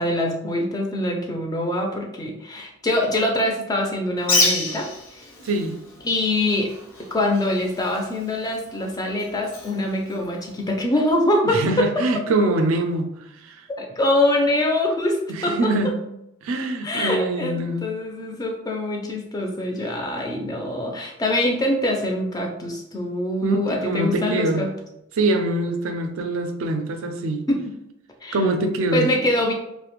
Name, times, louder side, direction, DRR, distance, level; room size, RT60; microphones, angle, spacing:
voice 1, 0.0-5.3 6.0-6.7 7.1-11.9 13.8-15.9 16.8-24.7 27.5-27.7 28.2-28.4 28.9-29.5, left 1 dB, 20° left, 1 dB, 0.4 m, -24 dB
Bird, 4.2-10.8, left 3 dB, 75° left, 0.7 m, -29 dB
voice 2, 5.4-5.8 11.4-13.1 13.4-13.7 15.3-16.0 16.4-17.9 23.4-24.7 25.1-27.5 28.3-29.1, right 2 dB, 75° right, 6 dB, 0.4 m, -24 dB
2.4 x 2.1 x 2.9 m, 0.84 s
head